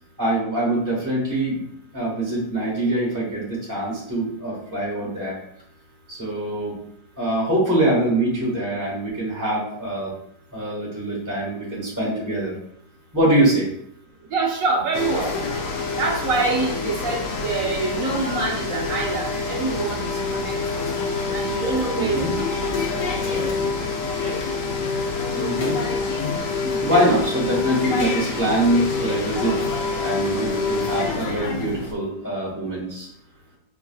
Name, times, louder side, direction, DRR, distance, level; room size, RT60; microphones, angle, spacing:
voice 1, 0.2-1.6 1.9-5.3 6.1-6.8 7.2-10.1 10.5-12.5 13.1-13.7 21.9-22.3 25.3-25.8 26.8-29.6 30.0-33.1, right 1 dB, 10° right, -6 dB, 1.3 m, -23 dB
voice 2, 14.3-15.3 16.0-20.9 21.3-22.8 26.6-26.8, right 3 dB, 60° right, 0 dB, 1.0 m, -26 dB
sound 1, 14.9-31.9, left 4 dB, 60° left, 0.9 m, -26 dB
5.8 x 2.5 x 2.3 m, 0.70 s
omnidirectional pair, 1.8 m